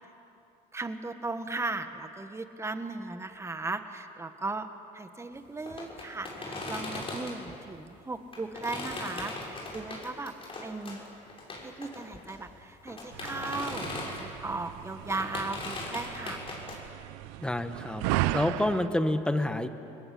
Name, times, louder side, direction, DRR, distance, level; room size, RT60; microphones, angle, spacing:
voice 1, 0.7-10.3 10.6-11.0 11.6-16.4, right 3 dB, 15° right, 8 dB, 1.9 m, -37 dB
sound 1, 5.7-7.5 8.3-14.5 14.9-16.8, left 2 dB, 30° left, 6.5 m, -39 dB
sound 2, 13.1-18.9, right 15 dB, 80° right, 0.8 m, -35 dB
voice 2, 17.4-18.1 18.3-19.7, left 1 dB, 5° left, 8 dB, 1.6 m, -28 dB
29.5 x 20.0 x 8.0 m, 2.8 s
supercardioid pair, 95°, 17 cm